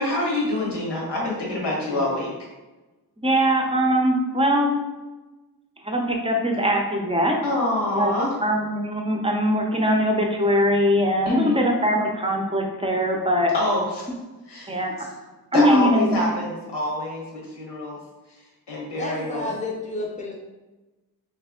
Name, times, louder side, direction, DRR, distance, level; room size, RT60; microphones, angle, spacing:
voice 1, 0.0-2.3 7.4-8.3 11.2-11.6 13.5-14.1 14.5-14.8 15.5-18.0 18.7-19.5, left 1 dB, 90° left, -3 dB, 1.4 m, -26 dB
voice 2, 3.2-4.7 5.8-7.4 7.9-8.1 8.4-13.5 14.7-14.9 15.5-16.3 19.4-19.5, equal, 15° right, 1 dB, 0.6 m, -21 dB
voice 3, 19.0-20.3, left 2 dB, 20° left, -1 dB, 0.7 m, -30 dB
3.3 x 3.2 x 3.6 m, 1.1 s
wide cardioid pair, 120°, 40 cm